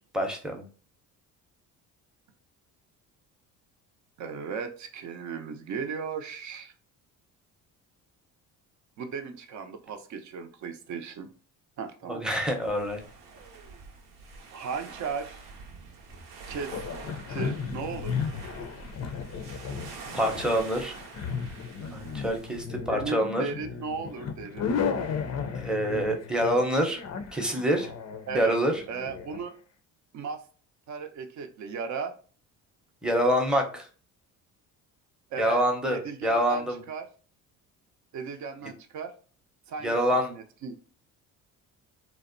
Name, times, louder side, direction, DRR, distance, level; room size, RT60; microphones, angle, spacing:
voice 1, 0.1-0.6 12.1-13.0 20.1-21.0 21.9-23.5 25.5-27.0 27.3-27.9 28.3-28.8 33.0-33.9 35.4-36.8 38.6-38.7 39.8-40.3, equal, ahead, 1 dB, 0.6 m, -26 dB
voice 2, 4.2-6.7 9.0-11.3 11.8-12.2 14.5-15.4 16.5-16.8 17.3-18.1 22.9-24.8 28.3-28.6 28.9-29.6 30.1-30.4 30.9-32.1 35.3-35.6 35.9-37.1 38.1-39.1 39.7-40.0 40.3-40.8, right 5 dB, 50° right, 7 dB, 0.5 m, -36 dB
sound 1, 12.6-22.6, right 4 dB, 85° right, 0.7 m, -45 dB
sound 2, 16.7-29.4, left 6 dB, 45° left, 0.5 m, -35 dB
2.6 x 2.0 x 2.5 m, 0.40 s
supercardioid pair, 75°, 38 cm